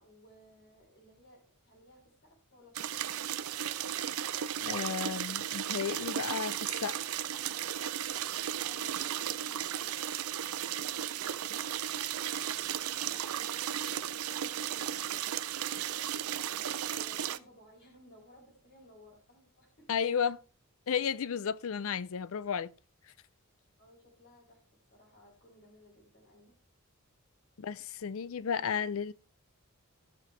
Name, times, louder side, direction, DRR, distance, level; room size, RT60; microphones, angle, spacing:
voice 1, 0.0-3.5 8.6-15.3 15.6-19.9 23.8-26.6, equal, 50° left, 4.3 m, -59 dB
sound 1, 2.7-17.4, right 10 dB, 90° right, 0.6 m, -35 dB
voice 2, 4.6-7.1 19.9-20.4 20.9-22.7 27.6-29.1, left 7 dB, 70° left, 0.5 m, -33 dB
17.0 x 5.9 x 3.3 m
head